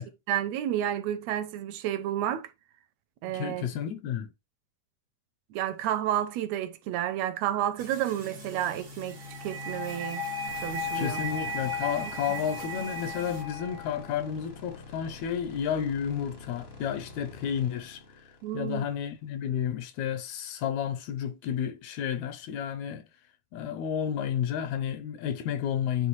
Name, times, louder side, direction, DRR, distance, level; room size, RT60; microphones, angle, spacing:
voice 1, 0.3-2.5 3.2-3.7 5.5-10.3 10.6-11.2 12.0-12.1 18.4-18.9, right 11 dB, 80° right, 1.8 m, -31 dB
voice 2, 3.3-4.3 10.9-18.2 18.5-23.1 23.5-26.1, left 8 dB, 80° left, 1.9 m, -31 dB
sound 1, 7.8-13.4, equal, 40° right, 0.8 m, -46 dB
sound 2, 9.2-14.2, left 2 dB, 60° right, 2.0 m, -35 dB
sound 3, 10.5-19.6, left 3 dB, 45° left, 0.8 m, -48 dB
9.2 x 3.3 x 3.1 m
omnidirectional pair, 3.4 m